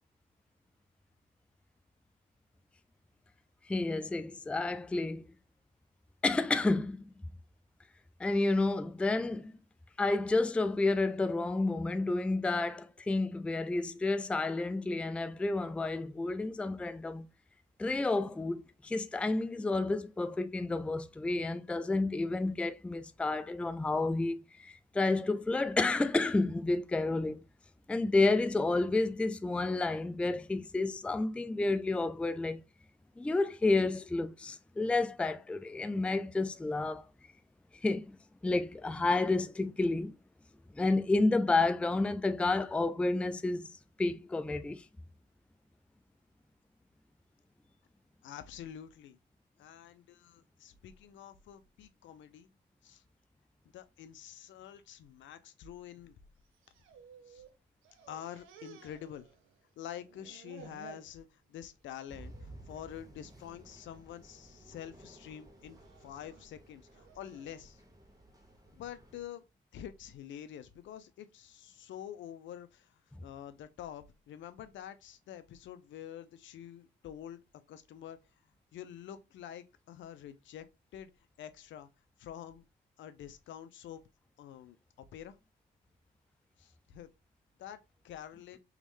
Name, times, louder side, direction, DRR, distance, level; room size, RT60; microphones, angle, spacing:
voice 1, 3.7-5.2 6.2-7.1 8.2-9.5 10.0-17.3 17.8-27.4 27.9-32.6 33.2-37.1 37.8-38.2 38.4-40.1 40.8-43.7 44.0-44.8, left 2 dB, 5° left, 0.3 m, -30 dB
voice 2, 48.2-49.2 49.6-52.5 52.8-53.0 53.7-56.2 57.3-57.4 58.1-59.3 59.8-67.8 68.7-69.4 69.7-77.4 77.7-78.2 78.7-80.7 80.9-81.1 81.4-81.9 82.2-82.6 83.0-84.0 84.4-85.4 86.6-87.1 87.6-88.6, left 10 dB, 75° left, 0.6 m, -47 dB
sound 1, 56.5-57.5 57.8-59.7 60.0-61.1 61.6-62.0 62.3-62.5 63.3-63.7 64.2-64.6 65.5-67.7, right 8 dB, 85° right, 0.7 m, -56 dB
sound 2, 62.1-69.3, right 1 dB, 15° right, 1.4 m, -55 dB
3.6 x 3.1 x 3.2 m
cardioid pair, 90°, 20 cm